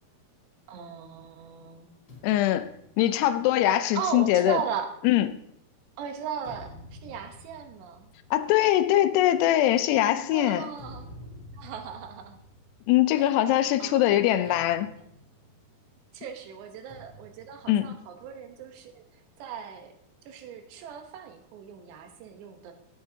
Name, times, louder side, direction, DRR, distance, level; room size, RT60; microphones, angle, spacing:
voice 1, 0.7-1.9 3.9-4.9 6.0-8.1 10.3-11.1 11.5-12.4 13.1-13.2 13.8-14.7 16.1-19.9 20.3-22.7, right 7 dB, 90° right, 5 dB, 3.3 m, -37 dB
sound 1, 2.1-5.7 6.2-13.6 13.9-14.1 14.5-16.1 16.9-18.6, left 1 dB, 45° left, 4.0 m, -50 dB
voice 2, 2.2-2.7 3.0-4.6 5.0-5.3 8.3-10.7 12.9-14.9 17.7-17.9, left 13 dB, 85° left, 10 dB, 2.7 m, -22 dB
17.0 x 7.8 x 2.8 m, 0.73 s
omnidirectional pair, 4.8 m